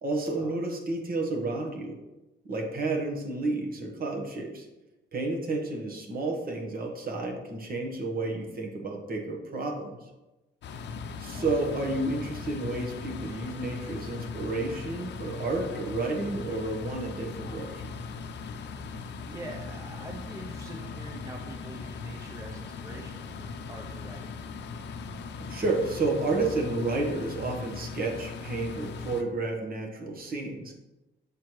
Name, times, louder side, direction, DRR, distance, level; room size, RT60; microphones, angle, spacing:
voice 1, 0.0-2.0 2.4-4.7 5.1-10.1 11.2-17.9 25.5-30.7, right 2 dB, 45° right, 1 dB, 1.3 m, -31 dB
sound 1, 10.6-29.2, left 4 dB, 65° left, 0.6 m, -39 dB
voice 2, 18.8-24.4, right 2 dB, 15° right, 0 dB, 0.7 m, -45 dB
7.3 x 4.4 x 3.1 m, 1.0 s
cardioid pair, 90°, 20 cm